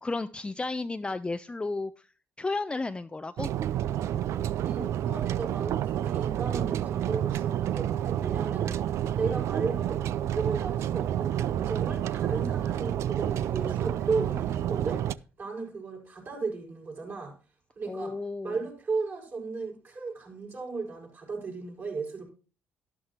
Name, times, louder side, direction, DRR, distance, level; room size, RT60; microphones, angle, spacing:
voice 1, 0.0-2.1 2.4-3.5 17.9-18.6, left 3 dB, 20° left, 0.5 m, -33 dB
sound 1, 3.4-15.1, right 11 dB, 65° right, 0.4 m, -29 dB
voice 2, 4.6-8.8 9.2-10.0 10.3-15.0 15.4-17.3 17.8-18.2 18.4-22.3, right 4 dB, 45° right, 6.2 m, -35 dB
12.0 x 11.0 x 2.9 m
supercardioid pair, 65°, 5 cm